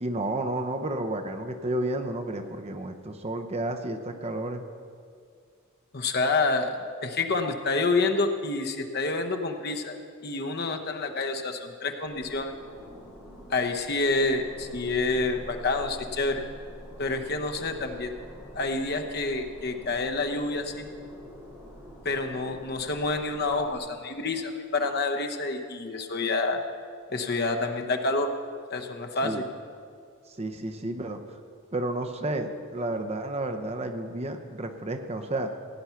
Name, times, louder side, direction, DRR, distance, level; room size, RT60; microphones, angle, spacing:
voice 1, 0.0-4.6 29.2-29.4 30.3-31.4 31.7-35.5, right 1 dB, 30° right, 7 dB, 0.8 m, -31 dB
voice 2, 5.9-10.0 10.2-12.5 13.5-16.4 17.0-18.2 18.5-20.9 22.0-26.6 27.1-28.3 28.7-29.4, left 3 dB, 50° left, 4 dB, 0.9 m, -28 dB
sound 1, 12.0-23.8, equal, 10° right, 3.4 m, -46 dB
16.5 x 9.4 x 5.8 m, 2.1 s
head